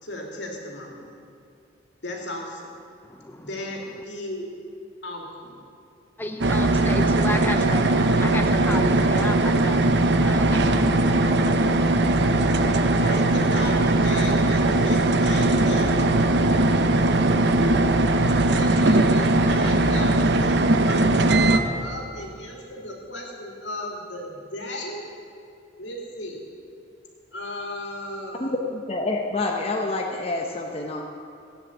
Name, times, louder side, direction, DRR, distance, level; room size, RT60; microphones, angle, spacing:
voice 1, 0.0-1.1 2.0-2.7 3.4-4.6 5.0-5.6 13.0-15.9 18.1-21.1 21.4-25.1 25.8-26.4 27.3-28.5, left 1 dB, 70° left, 0 dB, 2.8 m, -36 dB
voice 2, 3.1-3.5 6.2-11.7, left 1 dB, 10° left, 6 dB, 0.4 m, -33 dB
sound 1, 6.4-21.6, right 2 dB, 65° right, 0.8 m, -20 dB
voice 3, 28.4-31.0, left 2 dB, 30° left, 1 dB, 1.0 m, -27 dB
16.0 x 9.8 x 7.8 m, 2.5 s
head